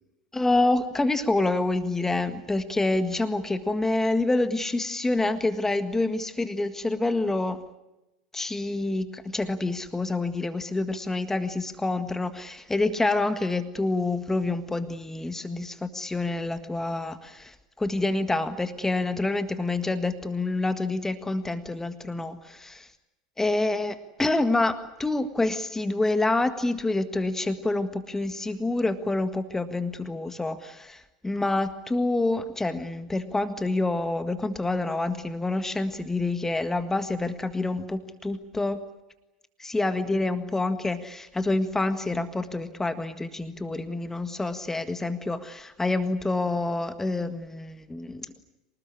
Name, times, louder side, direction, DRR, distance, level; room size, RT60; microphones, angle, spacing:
voice 1, 0.3-7.6 8.3-22.9 23.4-38.8 39.6-48.3, left 2 dB, 10° left, 10 dB, 1.7 m, -27 dB
25.5 x 19.5 x 9.9 m, 0.96 s
figure-of-eight pair, 80°, 4 cm